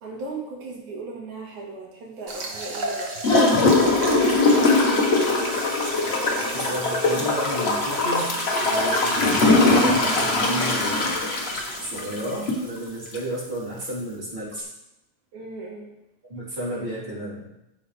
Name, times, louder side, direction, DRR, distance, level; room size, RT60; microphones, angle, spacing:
voice 1, 0.0-4.9 15.3-15.9, right 2 dB, 85° right, -2 dB, 3.1 m, -36 dB
sound 1, 2.3-14.2, right 2 dB, 45° right, 1.6 m, -36 dB
Gurgling / Toilet flush, 3.2-12.6 13.1-13.2, left 2 dB, 60° left, 0.6 m, -21 dB
voice 2, 6.5-11.1 11.8-14.7 16.3-17.4, right 1 dB, 20° right, -9 dB, 3.8 m, -32 dB
14.0 x 6.2 x 3.4 m, 0.89 s
omnidirectional pair, 3.4 m